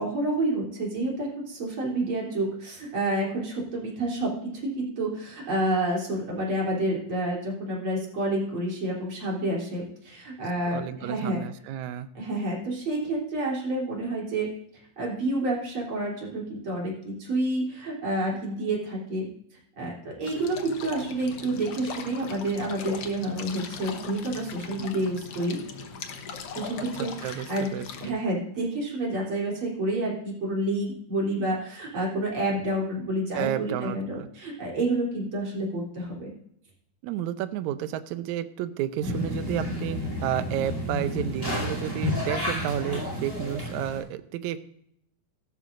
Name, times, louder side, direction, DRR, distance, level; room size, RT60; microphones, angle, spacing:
voice 1, 0.0-11.4 12.1-14.5 15.0-19.3 19.8-25.6 26.5-27.7 28.0-36.3, right 1 dB, 40° right, -3 dB, 4.1 m, -29 dB
voice 2, 10.7-12.1 27.2-27.5 27.7-28.1 33.4-34.3 37.0-44.6, right 11 dB, 75° right, 11 dB, 2.0 m, -31 dB
sound 1, 20.3-28.1, left 5 dB, 60° left, 1.8 m, -39 dB
sound 2, 39.0-44.0, left 1 dB, 5° left, 4.9 m, -31 dB
15.5 x 13.0 x 2.6 m, 0.71 s
omnidirectional pair, 3.5 m